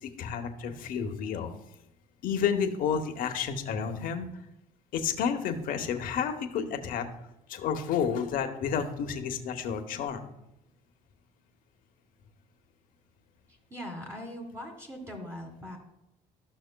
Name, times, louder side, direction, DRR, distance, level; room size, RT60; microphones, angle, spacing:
voice 1, 0.0-1.5 2.2-4.3 4.9-7.1 7.5-10.2, left 7 dB, 70° left, 6 dB, 0.9 m, -30 dB
voice 2, 13.7-15.8, equal, 20° right, 2 dB, 1.6 m, -40 dB
13.5 x 6.1 x 2.2 m, 0.84 s
cardioid pair, 105°, 15 cm